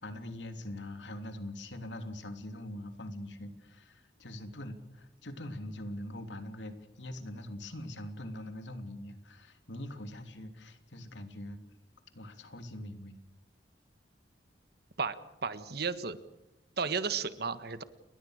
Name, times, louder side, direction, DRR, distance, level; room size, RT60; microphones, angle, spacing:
voice 1, 0.0-11.6 12.1-13.2, left 1 dB, 85° left, 7 dB, 3.2 m, -43 dB
voice 2, 15.4-16.2 16.8-17.8, right 5 dB, 60° right, 12 dB, 1.6 m, -33 dB
29.5 x 22.5 x 6.6 m, 0.89 s
head